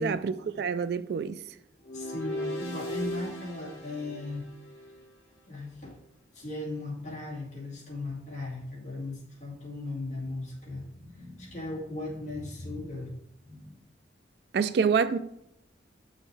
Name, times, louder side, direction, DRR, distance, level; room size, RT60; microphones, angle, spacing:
voice 1, 0.0-1.4 14.5-15.2, right 6 dB, 60° right, 0.3 m, -27 dB
sound 1, 1.8-5.1, left 1 dB, 65° left, 1.9 m, -37 dB
voice 2, 1.9-4.5 5.5-6.0 6.3-13.1 13.4-13.8, left 2 dB, 40° left, 2.3 m, -37 dB
7.1 x 6.5 x 3.3 m
head